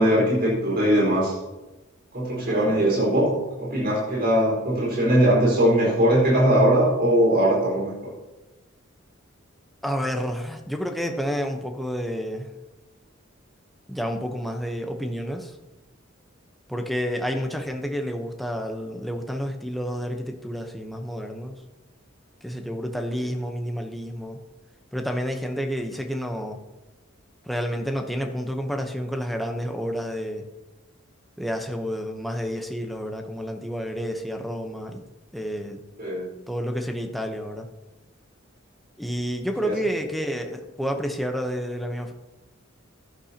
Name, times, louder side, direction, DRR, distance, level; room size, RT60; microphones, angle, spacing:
voice 1, 0.0-1.4 2.1-3.3 3.6-8.1 23.2-23.3 36.0-36.3 39.6-39.8, right 1 dB, 50° right, -5 dB, 4.8 m, -20 dB
voice 2, 9.8-12.5 13.9-15.5 16.7-21.6 22.4-24.4 24.9-26.6 27.4-30.5 31.4-35.0 35.3-35.8 36.5-37.7 39.0-42.1, equal, ahead, 3 dB, 0.9 m, -30 dB
15.0 x 11.5 x 2.9 m, 1.1 s
head